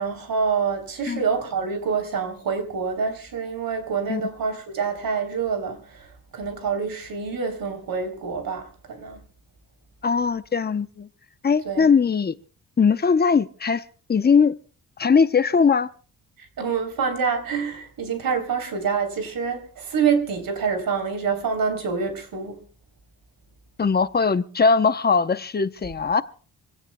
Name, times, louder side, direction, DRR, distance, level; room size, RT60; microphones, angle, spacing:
voice 1, 0.0-6.1 6.3-9.2 11.6-11.9 16.6-22.6, right 6 dB, 65° right, 3.4 m, -26 dB
voice 2, 10.0-11.1 11.4-12.3 12.8-13.8 14.1-14.5 15.0-15.9 23.8-26.2, left 5 dB, 25° left, 0.7 m, -20 dB
26.0 x 17.0 x 2.2 m
wide cardioid pair, 135°, 37 cm